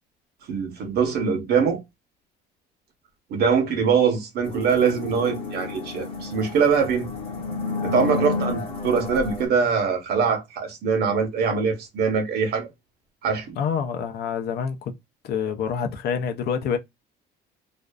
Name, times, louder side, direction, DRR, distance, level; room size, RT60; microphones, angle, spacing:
voice 1, 0.5-1.8 3.3-7.1 7.8-12.7 13.2-13.6, right 6 dB, 55° right, 0.9 m, -23 dB
sound 1, 4.4-9.4, left 4 dB, 30° left, 0.8 m, -31 dB
voice 2, 13.6-14.9 15.2-16.8, left 7 dB, 60° left, 0.5 m, -27 dB
2.5 x 2.3 x 2.2 m
cardioid pair, 135°, 19 cm